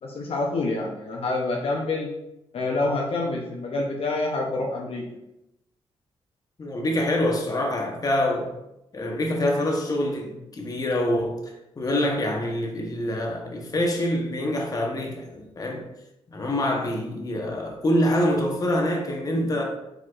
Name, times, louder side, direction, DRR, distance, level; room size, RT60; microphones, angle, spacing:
voice 1, 0.0-2.1 2.5-5.1, left 2 dB, 65° left, 0.7 m, -27 dB
voice 2, 6.6-8.5 8.9-15.9 16.3-19.6, left 1 dB, 35° left, 1.0 m, -25 dB
4.5 x 4.3 x 2.5 m
cardioid pair, 70°, 10 cm